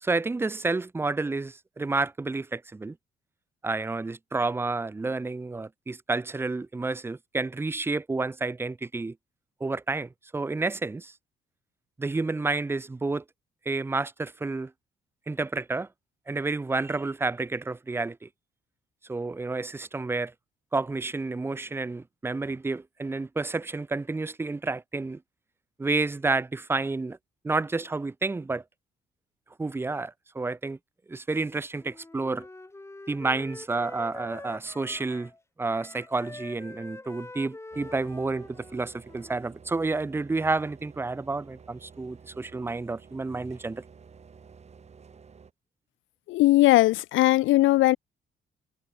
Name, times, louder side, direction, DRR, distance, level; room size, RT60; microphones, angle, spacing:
voice 1, 0.0-3.0 3.6-9.2 9.6-11.1 12.0-13.2 13.7-14.7 15.3-15.9 16.3-18.3 19.1-20.3 20.7-25.2 25.8-27.2 27.4-28.6 29.6-30.8 31.1-32.5 33.1-35.3 35.6-43.8, right 3 dB, 10° right, 0.4 m, -30 dB
Wind instrument woodwind instrument, 31.8-35.4 35.7-39.6, left 2 dB, 15° left, 1.6 m, -45 dB
sound 1, 37.7-45.5, right 6 dB, 35° right, 1.1 m, -52 dB
voice 2, 46.3-48.0, left 17 dB, 80° left, 0.4 m, -19 dB
cardioid pair, 90°, 20 cm